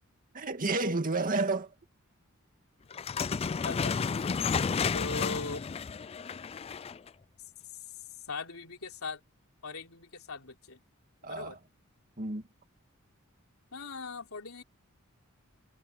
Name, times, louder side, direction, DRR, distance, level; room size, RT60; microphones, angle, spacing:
voice 1, 0.3-1.7 11.2-11.6 12.2-12.4, right 3 dB, 40° right, 2.2 m, -30 dB
sound 1, 2.9-7.1, left 5 dB, 30° left, 0.3 m, -31 dB
voice 2, 3.6-3.9 4.9-5.6 8.3-9.2 9.6-10.8 11.2-11.6 13.7-14.6, left 4 dB, 75° left, 3.7 m, -39 dB
head